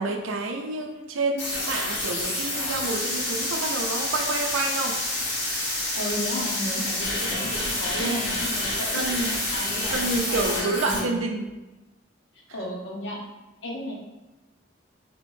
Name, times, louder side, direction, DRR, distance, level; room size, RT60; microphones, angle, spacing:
voice 1, 0.0-5.0 8.0-8.2 8.9-9.4 9.9-11.5, right 3 dB, 90° right, 4 dB, 0.5 m, -28 dB
sound 1, 1.4-11.0, left 1 dB, 85° left, 1.3 m, -28 dB
voice 2, 5.9-9.0 9.5-11.3 12.5-13.2 13.6-13.9, left 1 dB, 65° left, -2 dB, 0.8 m, -33 dB
3.4 x 3.0 x 2.6 m, 1.1 s
head